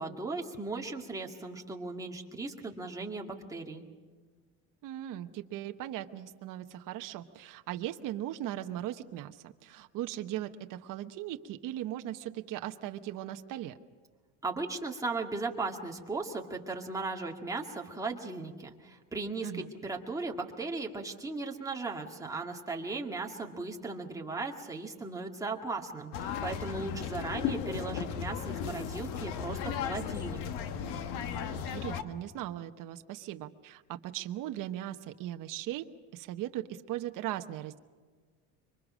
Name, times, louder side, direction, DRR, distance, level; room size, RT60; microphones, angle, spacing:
voice 1, 0.0-3.8 14.4-30.4, right 3 dB, 10° right, 0 dB, 2.1 m, -37 dB
voice 2, 4.8-13.7 19.4-19.7 26.7-27.0 31.5-35.9 36.1-37.8, right 13 dB, 55° right, 7 dB, 1.1 m, -38 dB
sound 1, 26.1-32.0, left 8 dB, 80° left, 1.6 m, -35 dB
26.0 x 23.5 x 6.3 m, 1.5 s
cardioid pair, 140°, 39 cm